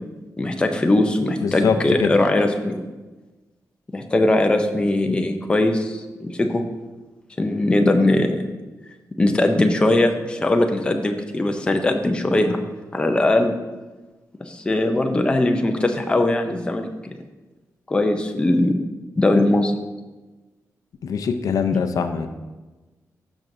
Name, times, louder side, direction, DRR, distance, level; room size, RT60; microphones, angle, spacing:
voice 1, 0.4-2.8 3.9-6.6 7.4-8.4 9.2-12.6 12.9-13.5 14.4-17.1 17.9-18.8 19.1-19.7, left 2 dB, 15° left, 5 dB, 0.5 m, -20 dB
voice 2, 1.4-2.1 21.0-22.3, left 6 dB, 75° left, 8 dB, 0.5 m, -23 dB
12.5 x 6.0 x 2.6 m, 1.2 s
wide cardioid pair, 170°, 6 cm